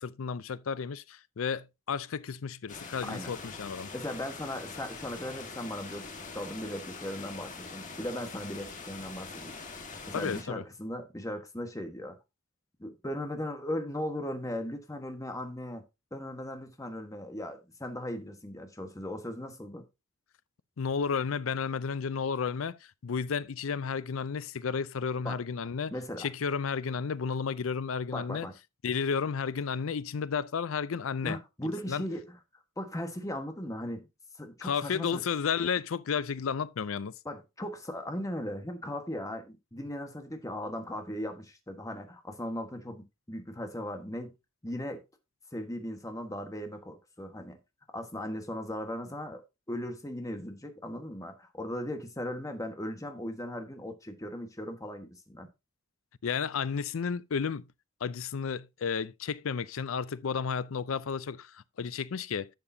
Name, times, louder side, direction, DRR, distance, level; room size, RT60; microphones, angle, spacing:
voice 1, 0.0-3.9 10.1-10.6 20.8-25.9 26.2-28.5 28.8-31.4 31.9-32.0 34.6-37.1 56.2-57.7 58.0-62.5, left 6 dB, 80° left, 0.5 m, -32 dB
sound 1, 2.7-10.4, left 4 dB, 40° left, 1.6 m, -43 dB
voice 2, 3.9-9.6 10.1-12.2 12.8-15.8 16.1-19.9 25.2-25.4 25.9-26.3 28.1-28.5 31.2-32.4 32.8-34.1 34.4-35.2 37.2-44.3 44.6-45.0 45.5-47.6 47.9-49.4 49.7-55.5, left 1 dB, 15° left, 1.4 m, -38 dB
11.0 x 6.9 x 2.7 m
head